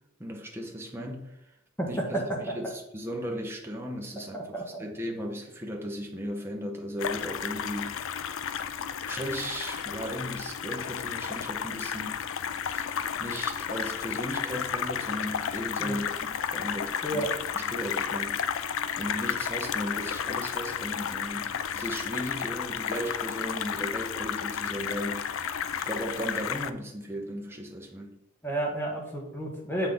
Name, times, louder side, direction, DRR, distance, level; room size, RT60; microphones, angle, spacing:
voice 1, 0.2-1.5 1.9-8.2 9.0-12.2 12.7-17.2 17.5-18.6 19.0-28.2, equal, 10° right, 1 dB, 1.0 m, -36 dB
voice 2, 4.3-4.8 15.8-16.0 17.0-17.3 28.4-29.9, right 1 dB, 10° left, -1 dB, 1.5 m, -32 dB
sound 1, 7.0-26.7, left 8 dB, 70° left, 0.4 m, -32 dB
7.4 x 5.8 x 3.6 m, 0.81 s
head